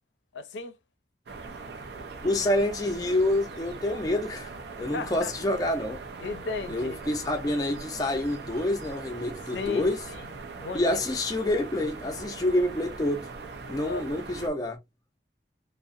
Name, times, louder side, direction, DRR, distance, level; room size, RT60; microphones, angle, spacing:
voice 1, 0.3-0.8 4.9-5.3 6.2-7.0 9.5-10.3 10.6-11.0 13.9-14.1, left 5 dB, 80° left, 0.4 m, -35 dB
sound 1, 1.3-14.5, right 4 dB, 70° right, 0.5 m, -41 dB
voice 2, 2.2-4.5 4.8-6.0 6.7-10.0 10.7-13.3 13.6-14.8, left 1 dB, 20° left, 0.4 m, -27 dB
2.6 x 2.0 x 2.4 m
head